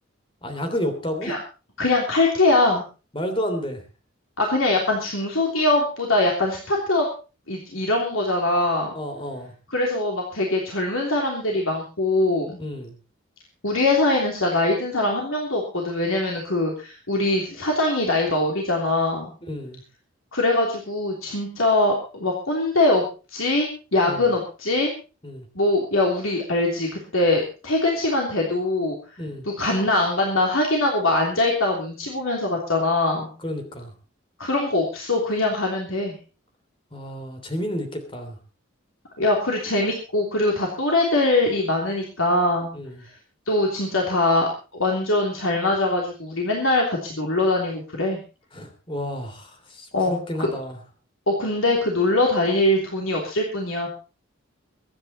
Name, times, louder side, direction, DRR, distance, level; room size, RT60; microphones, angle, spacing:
voice 1, 0.4-1.3 3.1-3.8 8.9-9.5 12.6-12.9 19.5-19.8 24.1-24.3 25.2-25.4 29.2-29.4 33.4-33.9 36.9-38.4 42.7-43.0 48.5-50.8, equal, 25° left, 6 dB, 3.1 m, -31 dB
voice 2, 1.8-2.8 4.4-7.1 7.5-8.9 9.7-12.6 13.6-19.3 20.3-23.0 23.3-24.9 25.5-29.0 29.6-33.3 34.4-36.1 39.2-42.7 43.0-43.1 43.5-48.2 49.9-50.5 51.3-53.9, left 2 dB, 80° left, 0 dB, 3.2 m, -22 dB
23.0 x 10.0 x 4.3 m, 0.34 s
head